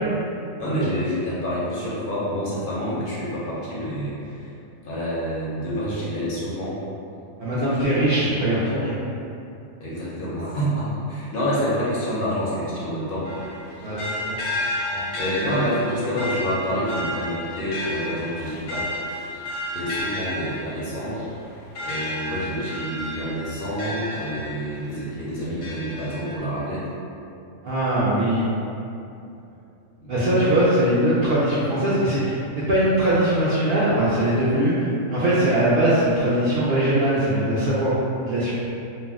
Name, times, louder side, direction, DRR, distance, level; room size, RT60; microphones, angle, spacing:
voice 1, 0.6-4.5 4.8-6.8 7.5-7.6 8.0-8.1 9.8-13.3 15.2-18.8 19.7-21.3 21.8-26.8 30.0-30.1, equal, 60° left, -8 dB, 0.6 m, -27 dB
voice 2, 7.4-8.9 13.8-14.1 14.9-15.0 27.6-28.5 30.1-34.8 35.1-37.9 38.2-38.5, right 1 dB, 70° right, -10 dB, 0.5 m, -21 dB
sound 1, 13.2-24.9 25.4-26.4, left 1 dB, 80° left, 1.1 m, -32 dB
2.5 x 2.0 x 3.4 m, 2.7 s
omnidirectional pair, 1.5 m